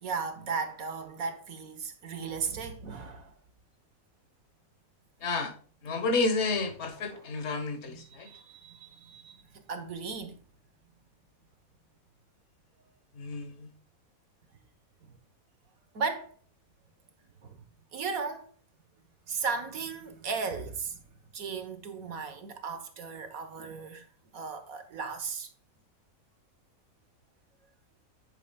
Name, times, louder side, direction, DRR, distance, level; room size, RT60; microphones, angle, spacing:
voice 1, 0.0-3.3 7.0-7.3 7.8-10.4 15.0-15.1 15.9-16.3 17.4-17.6 17.9-18.5 19.3-21.0 21.3-24.1 24.3-25.5, right 5 dB, 80° right, 1.7 m, -36 dB
voice 2, 5.2-5.5 5.8-8.3 13.2-13.7, left 3 dB, 55° left, 1.6 m, -30 dB
9.9 x 8.9 x 2.4 m
omnidirectional pair, 1.4 m